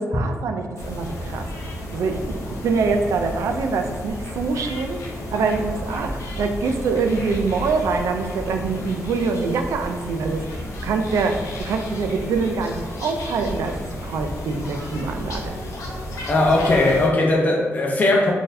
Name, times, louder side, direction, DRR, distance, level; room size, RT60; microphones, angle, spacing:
voice 1, 0.0-1.5 1.9-5.0 5.3-11.4 11.7-13.8 14.0-15.5, right 4 dB, 85° right, 5 dB, 0.3 m, -24 dB
sound 1, 0.8-17.1, left 1 dB, 85° left, 0.6 m, -32 dB
voice 2, 16.3-18.3, left 2 dB, 30° left, -1 dB, 0.6 m, -18 dB
3.8 x 2.6 x 2.6 m, 1.3 s
wide cardioid pair, 150°, 5 cm